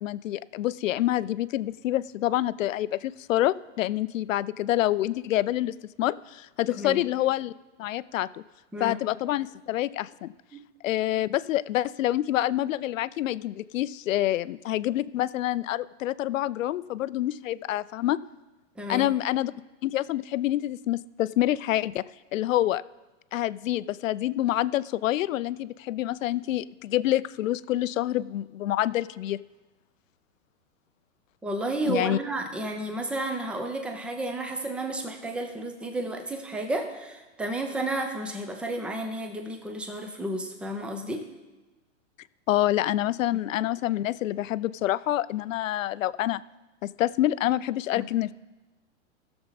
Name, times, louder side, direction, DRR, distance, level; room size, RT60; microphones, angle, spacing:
voice 1, 0.0-7.5 7.8-8.4 8.8-10.3 10.8-18.2 18.9-19.5 19.8-22.0 22.3-22.8 23.3-29.4 31.9-32.2 42.5-46.4 46.8-48.3, left 14 dB, 80° left, 18 dB, 0.5 m, -27 dB
voice 2, 6.7-7.0 8.7-9.0 10.5-10.6 18.8-19.1 31.4-41.2 47.9-48.1, right 1 dB, 5° right, 5 dB, 0.5 m, -32 dB
16.0 x 7.0 x 4.0 m, 1.1 s
hypercardioid pair, 145°, 39 cm